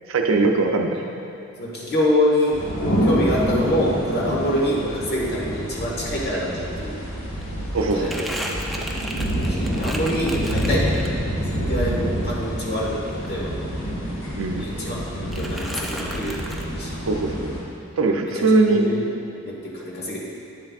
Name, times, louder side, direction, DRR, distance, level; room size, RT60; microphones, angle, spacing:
voice 1, 0.1-1.1 7.7-8.7 14.3-14.7 17.1-17.5 18.0-18.9, right 3 dB, 75° right, 3 dB, 0.5 m, -21 dB
voice 2, 1.6-2.6 3.0-7.0 7.9-8.2 9.1-13.6 14.6-17.0 18.0-19.0 19.4-20.2, equal, 50° left, -4 dB, 1.5 m, -26 dB
sound 1, 2.5-17.6, equal, 80° left, 1.4 m, -27 dB
Crumpling crinkling, 7.0-11.5 11.8-14.0 14.2-15.0 15.3-16.7, equal, ahead, 0.5 m, -35 dB
9.5 x 7.6 x 2.4 m, 2.8 s
head